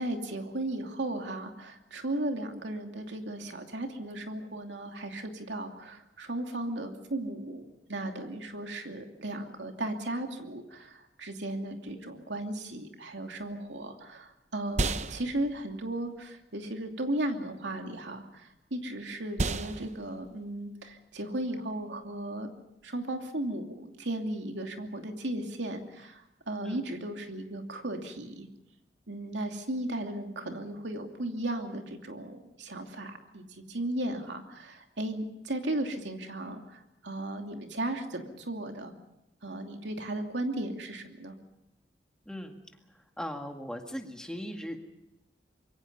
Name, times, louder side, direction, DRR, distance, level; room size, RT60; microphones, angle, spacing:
voice 1, 0.0-22.5 22.8-28.5 29.1-33.4 33.7-38.9 39.4-41.3, right 1 dB, 90° right, 4 dB, 2.8 m, -36 dB
sound 1, 13.5-23.0, right 2 dB, 40° right, 0.9 m, -38 dB
voice 2, 42.3-42.6 43.2-44.8, equal, 5° left, 3 dB, 2.0 m, -38 dB
25.5 x 22.5 x 5.5 m, 0.88 s
head